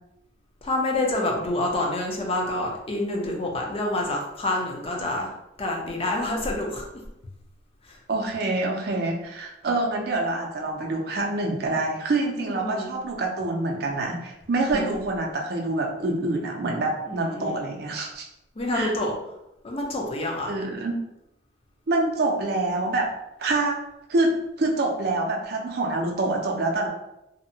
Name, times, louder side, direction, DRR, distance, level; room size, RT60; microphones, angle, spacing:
voice 1, 0.6-5.3 5.6-6.9 7.8-8.0 12.4-13.0 14.5-14.9 17.1-17.6 18.6-19.2 19.6-20.5, left 1 dB, 30° left, 0 dB, 0.5 m, -27 dB
voice 2, 8.1-18.3 18.7-18.9 20.5-20.9 21.9-23.1 23.4-23.8 24.1-26.9, right 2 dB, 60° right, 0 dB, 0.4 m, -26 dB
2.7 x 2.1 x 2.6 m, 0.88 s
head